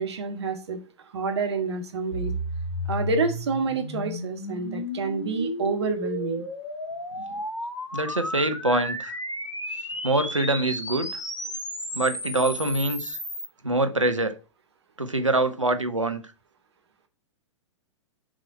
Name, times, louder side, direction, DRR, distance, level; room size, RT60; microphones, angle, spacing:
voice 1, 0.0-2.4 2.9-6.4 7.2-7.4, right 4 dB, 60° right, 1.7 m, -29 dB
sound 1, 2.1-13.5, equal, 90° left, 1.4 m, -33 dB
voice 2, 7.9-9.1 10.0-11.2 11.9-13.2 13.6-14.3 15.0-16.2, right 2 dB, 85° right, 1.0 m, -24 dB
7.6 x 5.0 x 4.2 m
figure-of-eight pair, 105°, 16 cm